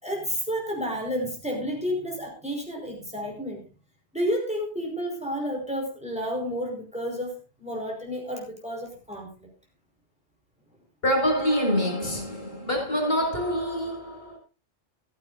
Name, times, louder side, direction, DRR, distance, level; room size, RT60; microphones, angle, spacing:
voice 1, 0.0-3.6 4.1-7.3 7.6-9.5, equal, 5° right, 5.1 m, -31 dB
voice 2, 11.0-14.4, equal, 55° left, 6.5 m, -26 dB
16.0 x 14.5 x 2.7 m
omnidirectional pair, 1.2 m